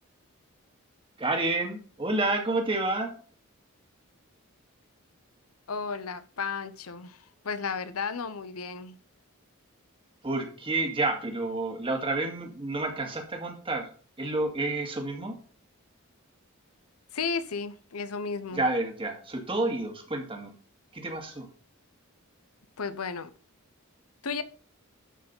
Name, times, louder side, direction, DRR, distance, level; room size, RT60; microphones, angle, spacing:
voice 1, 1.2-3.1 10.2-15.4 18.5-20.5 20.9-21.5, right 2 dB, 25° right, 2.0 m, -29 dB
voice 2, 5.7-9.0 17.1-18.6 22.8-23.3 24.2-24.4, left 5 dB, 90° left, 0.8 m, -33 dB
12.0 x 4.8 x 5.4 m
head